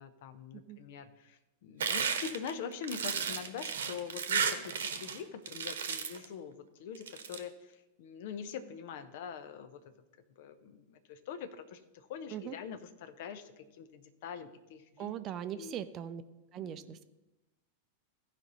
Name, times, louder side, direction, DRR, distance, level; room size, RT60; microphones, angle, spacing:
voice 1, 0.0-9.9 10.4-15.1 15.6-15.8 16.6-17.0, left 7 dB, 50° left, 10 dB, 0.7 m, -44 dB
sound 1, 1.8-5.2 5.5-6.2 6.9-7.4, right 6 dB, 65° right, 1.0 m, -33 dB
voice 2, 15.0-16.2 16.5-17.0, right 10 dB, 30° right, 10 dB, 0.5 m, -40 dB
15.0 x 5.3 x 4.1 m, 1.0 s
figure-of-eight pair, 90°, 0 cm